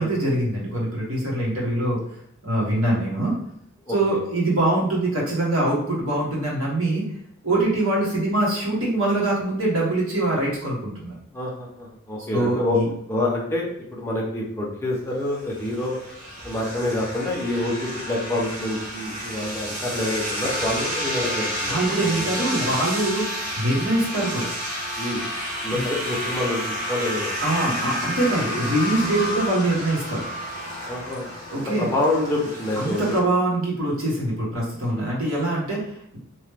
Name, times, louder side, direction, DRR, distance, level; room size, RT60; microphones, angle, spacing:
voice 1, 0.0-2.0 2.4-3.4 3.9-7.0 7.4-11.1 12.3-12.9 21.7-24.5 25.7-25.8 27.4-30.2 31.5-31.9 32.7-36.2, right 1 dB, 75° right, -5 dB, 1.2 m, -23 dB
voice 2, 3.9-4.2 11.3-12.8 13.1-16.0 16.4-21.8 22.0-22.7 25.0-25.2 25.6-26.6 26.9-27.4 28.5-28.6 30.9-31.3 31.8-33.2 34.9-35.1, left 1 dB, 10° left, -3 dB, 0.6 m, -27 dB
sound 1, 15.3-33.2, equal, 40° right, 0.7 m, -30 dB
2.9 x 2.2 x 3.3 m, 0.71 s
head